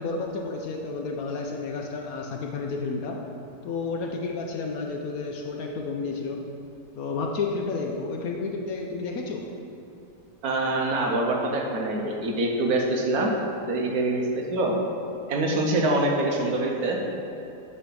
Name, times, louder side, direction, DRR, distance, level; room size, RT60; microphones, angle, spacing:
voice 1, 0.0-3.2 3.6-6.4 6.9-9.5, left 4 dB, 70° left, 1 dB, 0.9 m, -31 dB
voice 2, 10.4-13.3 13.6-14.8 15.3-17.0, right 2 dB, 65° right, 0 dB, 1.2 m, -25 dB
7.5 x 3.4 x 6.1 m, 2.8 s
omnidirectional pair, 1.9 m